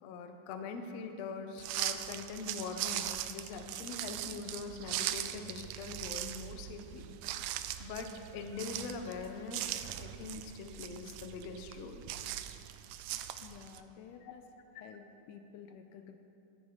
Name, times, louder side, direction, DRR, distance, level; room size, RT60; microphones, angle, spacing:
voice 1, 0.0-7.1 7.8-12.1 14.2-14.3, left 4 dB, 65° left, 6 dB, 1.7 m, -43 dB
sound 1, 1.6-13.8, right 12 dB, 80° right, 1.8 m, -40 dB
voice 2, 13.4-14.4 14.8-16.2, left 7 dB, 85° left, 7 dB, 2.2 m, -52 dB
13.5 x 12.5 x 5.1 m, 2.8 s
omnidirectional pair, 3.8 m